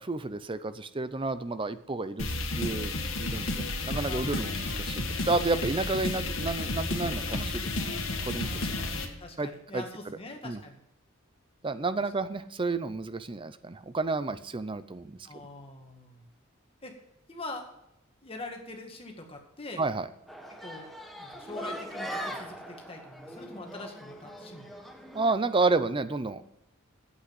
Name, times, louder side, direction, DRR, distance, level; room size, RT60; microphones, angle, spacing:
voice 1, 0.0-2.9 3.2-7.7 8.2-8.8 9.4-9.8 10.4-10.6 11.6-15.2 19.8-20.1 25.1-26.4, right 3 dB, 25° right, 13 dB, 0.6 m, -31 dB
sound 1, 2.2-9.1, left 2 dB, 65° left, 1.8 m, -32 dB
voice 2, 4.0-4.5 8.4-10.8 12.0-12.1 15.3-16.3 16.8-17.0 17.3-17.7 18.2-19.8 20.5-20.9 21.2-24.7, left 2 dB, 25° left, 3 dB, 1.9 m, -44 dB
sound 2, 20.3-25.3, equal, ahead, 1.2 m, -41 dB
8.8 x 8.4 x 7.8 m, 0.84 s
head